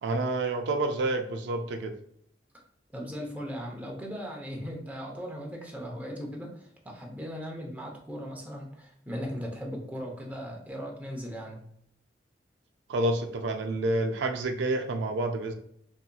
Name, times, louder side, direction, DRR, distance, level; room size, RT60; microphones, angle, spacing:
voice 1, 0.0-1.9 12.9-15.5, right 2 dB, 75° right, 6 dB, 0.4 m, -28 dB
voice 2, 2.9-11.6, equal, 10° right, -1 dB, 0.6 m, -38 dB
4.0 x 2.6 x 2.2 m, 0.70 s
head